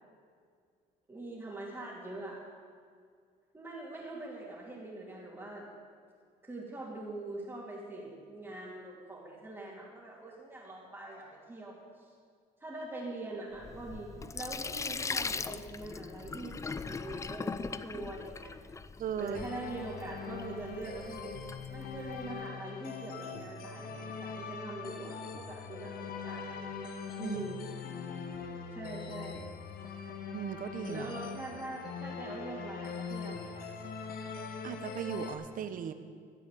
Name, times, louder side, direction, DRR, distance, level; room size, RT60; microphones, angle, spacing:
voice 1, 1.1-2.4 3.5-5.7 6.4-12.1 12.6-18.6 19.2-21.4 21.7-26.7 27.2-27.7 28.7-29.5 30.9-33.7, right 2 dB, 15° right, -7 dB, 2.9 m, -43 dB
Sink (filling or washing), 13.5-22.3, left 4 dB, 20° left, 0.4 m, -40 dB
voice 2, 19.0-19.4 27.2-27.4 30.3-31.1 34.6-35.9, right 8 dB, 55° right, 10 dB, 1.1 m, -37 dB
sound 1, 19.3-35.3, left 5 dB, 60° left, 1.6 m, -42 dB
15.0 x 7.5 x 8.4 m, 2.1 s
cardioid pair, 110°, 17 cm